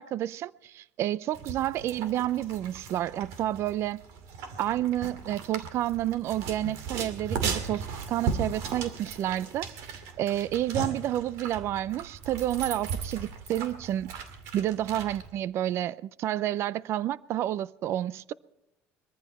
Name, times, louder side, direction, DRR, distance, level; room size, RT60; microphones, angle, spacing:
voice 1, 0.0-4.0 4.6-9.7 10.2-14.1 14.5-18.3, right 12 dB, 55° right, 0.5 m, -30 dB
sound 1, 1.3-15.3, right 5 dB, 75° right, 2.3 m, -37 dB
22.5 x 14.5 x 4.3 m
supercardioid pair, 100°, 5 cm